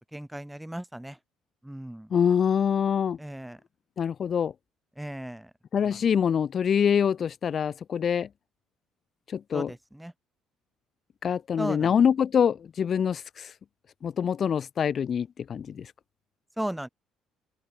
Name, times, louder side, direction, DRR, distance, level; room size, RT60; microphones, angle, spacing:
voice 1, 0.1-1.2 1.6-2.1 3.2-3.6 5.0-5.5 5.8-6.0 9.5-10.1 11.6-11.9 16.6-16.9, right 1 dB, 5° right, 1.1 m, -36 dB
voice 2, 2.1-3.2 4.0-4.5 5.7-8.3 9.3-9.7 11.2-13.5 14.0-15.9, left 7 dB, 50° left, 0.4 m, -25 dB
open air
supercardioid pair, 75°, 0 cm